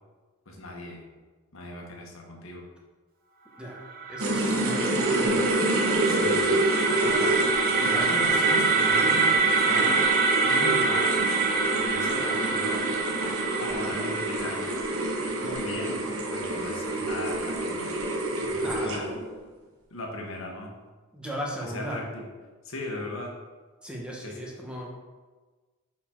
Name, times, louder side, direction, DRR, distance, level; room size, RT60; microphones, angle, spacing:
voice 1, 0.5-1.0 1.5-2.6 6.1-6.5 7.0-7.4 7.8-10.0 10.4-11.2 11.7-12.8 13.6-14.7 15.4-18.0 18.4-19.1 19.9-20.7 21.6-22.3 22.6-23.4 24.2-24.4, left 1 dB, 70° left, 0 dB, 1.3 m, -37 dB
sound 1, 3.8-15.7, right 4 dB, 45° right, 0.9 m, -26 dB
voice 2, 4.1-5.6 7.9-8.1 13.9-14.0 18.6-19.0 21.1-22.0 23.8-24.9, equal, 5° right, -2 dB, 1.1 m, -36 dB
sound 2, 4.2-19.3, right 1 dB, 90° right, 1.0 m, -28 dB
6.6 x 4.4 x 4.4 m, 1.3 s
head